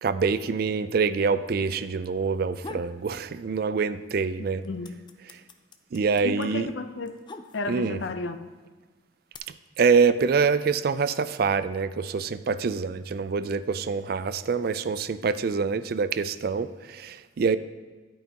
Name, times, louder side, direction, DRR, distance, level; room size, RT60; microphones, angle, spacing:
voice 1, 0.0-4.6 5.9-6.7 7.7-8.0 9.8-17.6, right 5 dB, 55° right, 13 dB, 0.4 m, -25 dB
sound 1, 2.3-3.0 3.4-4.1 4.4-8.0 8.7-9.4, left 3 dB, 25° left, 0.5 m, -43 dB
voice 2, 4.4-4.9 6.2-7.2 7.5-8.5, left 3 dB, 80° left, 9 dB, 0.6 m, -33 dB
10.5 x 9.0 x 2.9 m, 1.4 s
head